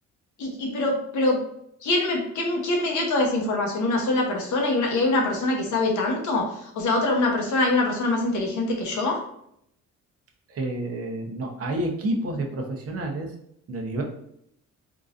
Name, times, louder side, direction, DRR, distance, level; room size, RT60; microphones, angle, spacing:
voice 1, 0.4-1.4 1.8-9.2, left 2 dB, 75° left, 1 dB, 1.0 m, -24 dB
voice 2, 10.5-13.3 13.7-14.0, right 1 dB, 50° right, 2 dB, 0.8 m, -29 dB
3.8 x 2.5 x 2.5 m, 0.73 s
cardioid pair, 90°, 30 cm